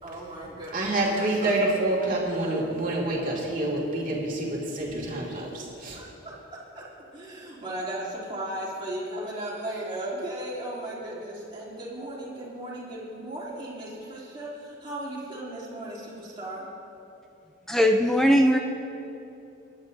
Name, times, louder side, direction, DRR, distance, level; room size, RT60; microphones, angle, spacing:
voice 1, 0.0-1.7 5.9-16.7, right 1 dB, 25° right, -7 dB, 2.9 m, -36 dB
voice 2, 0.7-6.0, right 2 dB, 45° right, -4 dB, 2.3 m, -27 dB
voice 3, 17.7-18.6, equal, ahead, 3 dB, 0.5 m, -19 dB
24.5 x 11.0 x 2.7 m, 2.8 s
head